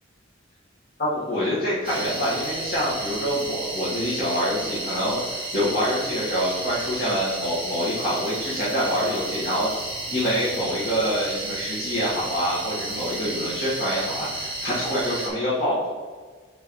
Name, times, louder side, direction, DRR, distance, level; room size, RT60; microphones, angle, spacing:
voice 1, 1.0-9.7 10.1-15.9, equal, 50° left, -10 dB, 1.6 m, -26 dB
sound 1, 1.8-15.3, right 2 dB, 25° right, 1.4 m, -32 dB
7.3 x 4.8 x 3.1 m, 1.5 s
head